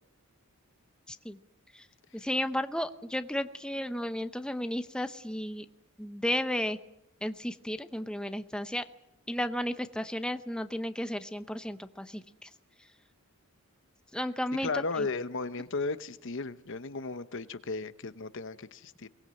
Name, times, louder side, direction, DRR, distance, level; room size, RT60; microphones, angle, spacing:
voice 1, 1.1-1.4 1.7-1.9 2.1-5.7 6.0-6.8 7.2-8.8 9.3-12.5 14.1-15.1, left 1 dB, 5° left, 9 dB, 0.7 m, -33 dB
voice 2, 14.6-19.1, left 3 dB, 55° left, 12 dB, 0.9 m, -35 dB
23.0 x 19.5 x 7.7 m, 0.85 s
head